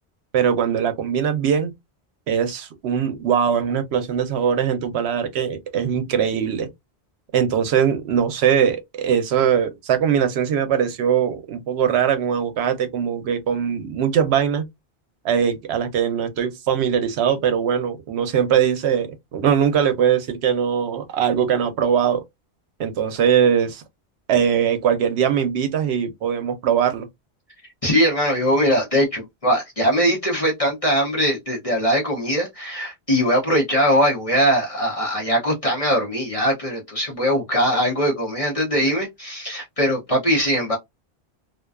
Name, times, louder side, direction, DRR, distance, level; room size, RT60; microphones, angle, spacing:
voice 1, 0.3-1.7 2.3-6.7 7.3-14.6 15.2-19.1 19.3-22.2 22.8-23.8 24.3-27.1, right 8 dB, 75° right, 0.8 m, -21 dB
voice 2, 27.8-40.8, equal, 35° left, 0.7 m, -21 dB
2.4 x 2.2 x 2.3 m
omnidirectional pair, 1.1 m